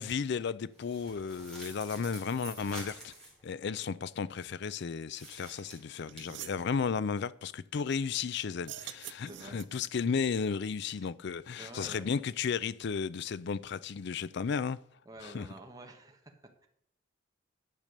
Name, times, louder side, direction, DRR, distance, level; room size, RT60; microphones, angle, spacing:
voice 1, 0.0-3.1 3.4-14.8 15.2-15.5, left 6 dB, 60° left, 0.4 m, -34 dB
sound 1, 0.7-3.4 5.1-6.2, right 1 dB, 5° left, 3.6 m, -47 dB
sound 2, 5.7-5.8 6.1-6.6 8.6-9.9, right 12 dB, 60° right, 0.5 m, -45 dB
voice 2, 9.1-9.6 11.6-12.1 15.0-16.7, right 2 dB, 20° right, 1.2 m, -49 dB
10.5 x 6.8 x 6.5 m
head